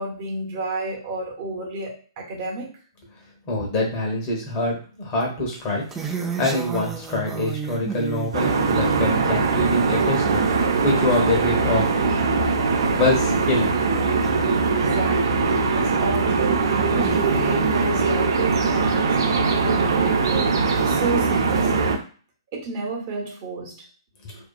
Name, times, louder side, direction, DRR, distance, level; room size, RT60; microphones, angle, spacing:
voice 1, 0.0-2.7 14.7-20.5 20.8-22.0 22.5-23.8, right 3 dB, 40° right, -1 dB, 0.8 m, -31 dB
voice 2, 3.5-5.8 6.4-11.9 12.9-13.7, left 2 dB, 35° left, 0 dB, 1.0 m, -25 dB
sound 1, 5.6-10.7 11.1-11.5 12.0-12.1 12.3-12.4 12.9-13.0 14.2-14.3 15.3-15.6 16.2-16.3 16.6-18.2 18.7-19.2 19.9-20.0 20.7-21.1, right 6 dB, 10° right, 0.4 m, -33 dB
sound 2, 8.3-22.0, right 4 dB, 75° right, 0.6 m, -21 dB
2.7 x 2.4 x 2.2 m, 0.40 s
hypercardioid pair, 135°, 2 cm